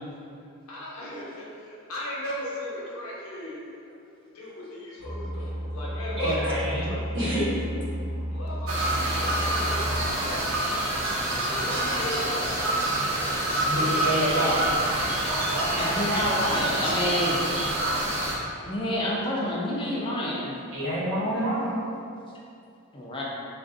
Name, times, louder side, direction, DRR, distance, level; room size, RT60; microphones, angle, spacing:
voice 1, 0.7-3.6 4.2-7.2 8.3-10.4 11.4-14.2, left 1 dB, 90° left, -5 dB, 0.8 m, -36 dB
sound 1, 5.0-10.0, equal, 25° right, 0.6 m, -32 dB
voice 2, 6.2-6.9 7.1-7.5 13.7-14.7 20.7-21.8, equal, 60° right, -10 dB, 1.2 m, -27 dB
sound 2, 8.7-18.4, right 1 dB, 85° right, 0.6 m, -26 dB
voice 3, 15.6-17.4 18.7-20.5 22.9-23.2, left 1 dB, 25° left, -4 dB, 0.4 m, -28 dB
3.8 x 2.5 x 2.5 m, 2.5 s
head